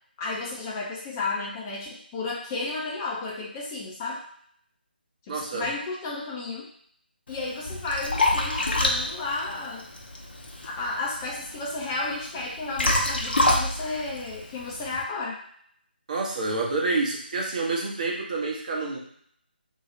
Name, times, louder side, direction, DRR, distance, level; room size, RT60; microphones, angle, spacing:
voice 1, 0.2-4.2 5.2-6.7 7.3-9.9 10.6-15.4, left 3 dB, 15° left, -4 dB, 0.5 m, -33 dB
voice 2, 5.3-5.7 16.1-19.0, right 3 dB, 45° right, -2 dB, 0.9 m, -28 dB
Liquid, 7.3-15.0, left 1 dB, 65° left, 0.7 m, -28 dB
2.8 x 2.3 x 4.1 m, 0.63 s
figure-of-eight pair, 150°, 6 cm